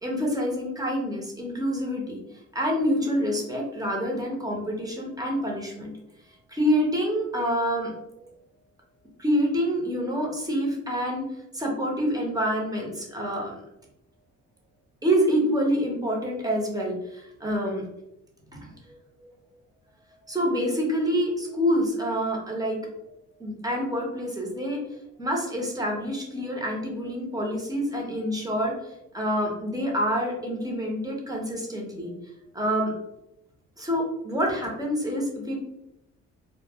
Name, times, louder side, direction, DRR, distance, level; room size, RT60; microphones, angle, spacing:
voice 1, 0.0-2.2 2.5-5.9 6.5-8.3 9.2-11.3 11.5-13.6 15.0-17.8 18.5-18.9 20.3-22.8 23.4-24.8 25.2-28.7 29.1-32.1 32.5-32.9 33.8-35.6, equal, 10° right, -1 dB, 0.8 m, -27 dB
2.1 x 2.1 x 3.4 m, 0.85 s
cardioid pair, 90°, 30 cm